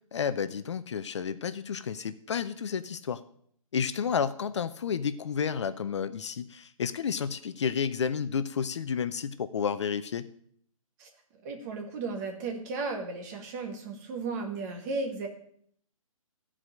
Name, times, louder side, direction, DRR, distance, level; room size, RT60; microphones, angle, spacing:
voice 1, 0.1-3.2 3.7-10.3, left 7 dB, 55° left, 13 dB, 0.6 m, -31 dB
voice 2, 11.4-15.3, right 3 dB, 30° right, 3 dB, 1.8 m, -35 dB
15.0 x 5.0 x 7.5 m, 0.65 s
figure-of-eight pair, 135°, 18 cm